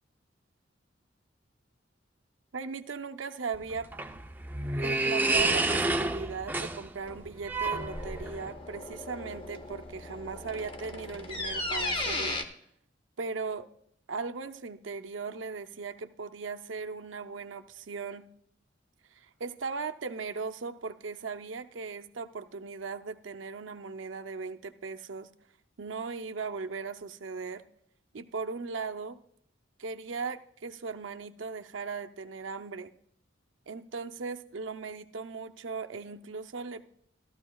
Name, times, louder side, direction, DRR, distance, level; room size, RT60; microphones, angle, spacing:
voice 1, 2.5-3.9 4.6-12.4 13.2-13.7 14.1-18.3 19.1-25.3 25.8-27.6 28.1-29.2 29.8-32.9 33.7-36.8, right 4 dB, 85° right, 7 dB, 0.6 m, -38 dB
sound 1, 3.5-8.5, right 2 dB, 10° right, 0.4 m, -29 dB
sound 2, 7.1-12.4, left 2 dB, 25° left, 0.9 m, -36 dB
14.5 x 13.0 x 2.3 m, 0.67 s
head